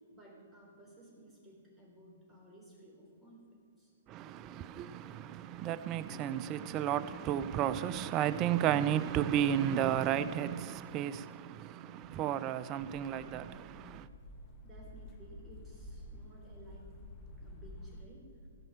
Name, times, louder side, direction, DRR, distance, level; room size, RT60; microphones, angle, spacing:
voice 1, 0.1-3.9 14.6-17.1 17.4-18.3, right 1 dB, 10° right, 3.5 m, -56 dB
voice 2, 4.1-14.1, right 10 dB, 30° right, 0.5 m, -33 dB
sound 1, 12.8-18.0, left 1 dB, 30° left, 1.7 m, -50 dB
16.0 x 5.5 x 8.0 m
hypercardioid pair, 130°, 0 cm